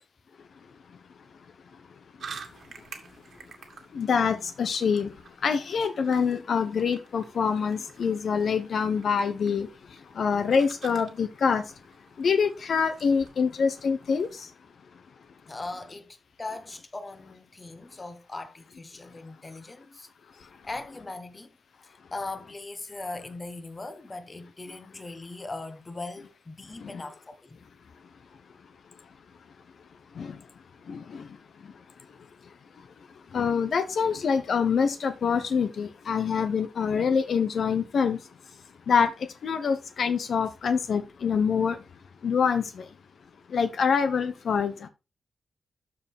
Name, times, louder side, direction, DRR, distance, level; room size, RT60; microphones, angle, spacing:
sound 1, 2.2-14.4, right 5 dB, 70° right, 1.9 m, -49 dB
voice 1, 3.9-5.1 5.4-9.7 10.1-11.6 12.2-14.5 26.8-27.0 30.2-30.4 30.9-31.3 33.3-38.2 38.9-41.8 42.2-42.9 43.5-44.9, left 6 dB, 65° left, 0.8 m, -25 dB
voice 2, 15.5-20.1 20.6-21.5 21.8-27.6, left 2 dB, 25° left, 1.1 m, -39 dB
13.0 x 4.6 x 3.5 m
wide cardioid pair, 155°, 0 cm